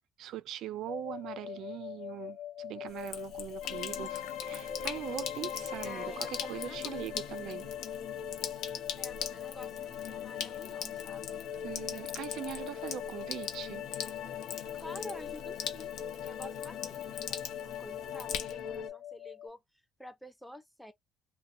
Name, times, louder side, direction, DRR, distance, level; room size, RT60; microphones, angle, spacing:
voice 1, 0.2-7.7 11.6-13.9, right 11 dB, 65° right, 0.3 m, -41 dB
sound 1, 0.9-19.5, left 12 dB, 55° left, 1.0 m, -43 dB
Sink (filling or washing), 2.9-18.8, left 8 dB, 70° left, 0.7 m, -42 dB
sound 2, 3.6-18.9, left 7 dB, 85° left, 1.1 m, -43 dB
voice 2, 5.8-7.2 7.8-7.9 9.0-11.4 14.7-15.9 16.3-19.6 20.0-20.9, equal, ahead, 0.6 m, -49 dB
2.9 x 2.1 x 2.6 m
cardioid pair, 140°, 0 cm